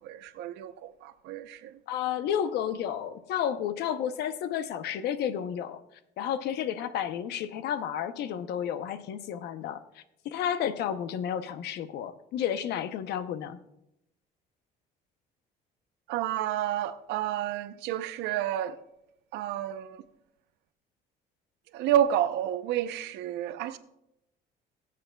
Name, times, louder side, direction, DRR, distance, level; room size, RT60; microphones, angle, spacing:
voice 1, 0.0-1.8 16.1-18.8 19.3-20.0 21.7-23.8, right 11 dB, 90° right, 0.7 m, -30 dB
voice 2, 1.9-5.8 6.2-9.8 10.2-13.6, left 9 dB, 75° left, 0.7 m, -31 dB
22.0 x 7.6 x 2.3 m
cardioid pair, 110°, 17 cm